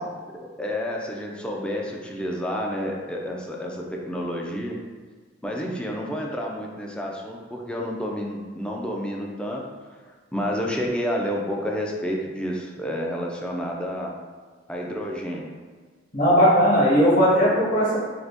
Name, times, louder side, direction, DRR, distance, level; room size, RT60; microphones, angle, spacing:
voice 1, 0.3-4.8 5.4-9.6 10.3-14.1 14.7-15.5, equal, 5° left, -1 dB, 0.4 m, -30 dB
voice 2, 16.1-18.0, equal, 45° left, -6 dB, 1.1 m, -18 dB
2.8 x 2.7 x 3.4 m, 1.5 s
head